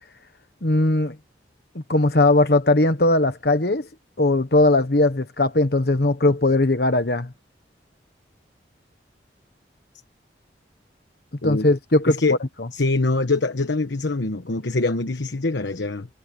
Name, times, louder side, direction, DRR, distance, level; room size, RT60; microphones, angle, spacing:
voice 1, 0.6-1.1 1.7-3.9 4.2-7.3 11.4-12.2, left 2 dB, 60° left, 1.2 m, -19 dB
voice 2, 12.1-12.4 12.7-16.1, left 3 dB, 80° left, 1.1 m, -24 dB
head